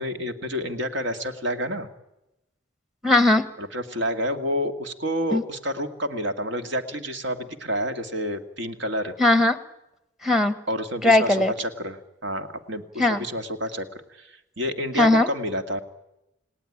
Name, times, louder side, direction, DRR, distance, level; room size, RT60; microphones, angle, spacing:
voice 1, 0.0-1.9 3.6-9.1 10.7-15.8, equal, 65° right, 7 dB, 2.1 m, -29 dB
voice 2, 3.0-3.5 5.3-5.4 9.2-9.6 10.2-10.6 11.0-11.5 13.0-13.2 15.0-15.3, left 2 dB, ahead, 12 dB, 1.1 m, -19 dB
29.5 x 18.0 x 10.0 m, 0.94 s
head